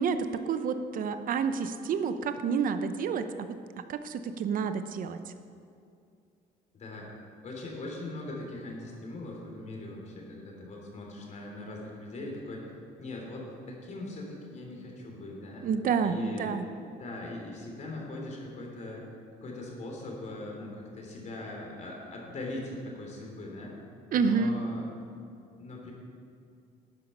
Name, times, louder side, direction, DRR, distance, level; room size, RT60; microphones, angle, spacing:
voice 1, 0.0-5.2 15.6-16.7 24.1-24.6, right 6 dB, 55° right, 10 dB, 0.8 m, -29 dB
voice 2, 6.7-7.1 7.4-12.7 13.0-15.7 16.0-16.7 17.0-19.0 19.4-23.7 24.1-24.9 25.6-25.9, left 2 dB, 45° left, -1 dB, 3.2 m, -40 dB
12.0 x 9.6 x 5.5 m, 2.5 s
cardioid pair, 110°, 17 cm